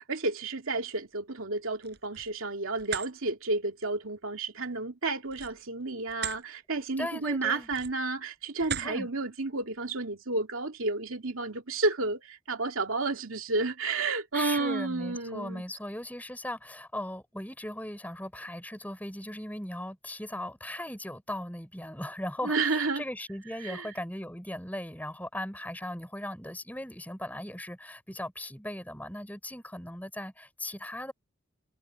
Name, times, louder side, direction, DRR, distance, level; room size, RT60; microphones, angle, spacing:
voice 1, 0.1-15.6 22.4-23.0 23.6-23.9, right 3 dB, 85° right, 2.5 m, -31 dB
sound 1, 1.7-2.3 2.8-3.1 5.2-6.4 6.9-7.1 7.6-8.1 8.6-9.0, right 8 dB, 50° right, 7.7 m, -38 dB
voice 2, 7.0-7.7 8.8-9.1 14.3-31.1, left 1 dB, 10° left, 6.9 m, -38 dB
head